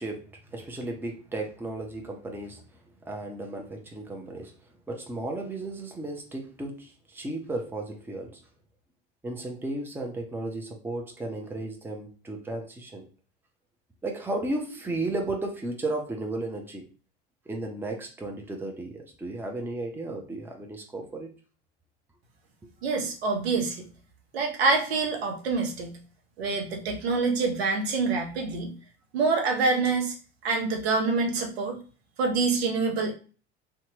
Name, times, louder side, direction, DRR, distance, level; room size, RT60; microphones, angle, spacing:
voice 1, 0.0-2.6 3.0-4.5 4.9-8.4 9.2-13.1 14.0-16.9 17.5-21.3, right 2 dB, 5° right, 2 dB, 0.6 m, -34 dB
voice 2, 22.8-23.9 24.3-26.0 26.4-28.7 29.1-30.1 30.4-31.8 32.2-33.1, right 4 dB, 75° right, 3 dB, 0.8 m, -26 dB
2.8 x 2.3 x 2.8 m, 0.37 s
figure-of-eight pair, 70°, 31 cm